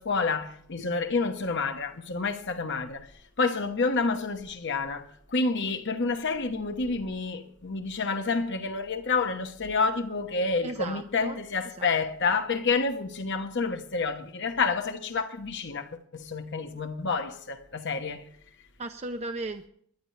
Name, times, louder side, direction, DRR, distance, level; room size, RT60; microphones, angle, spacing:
voice 1, 0.0-3.0 3.4-18.3, left 4 dB, 55° left, 1.1 m, -29 dB
voice 2, 10.6-11.4 11.8-11.9 18.8-19.7, right 2 dB, 30° right, 0.6 m, -36 dB
24.5 x 10.5 x 3.2 m
head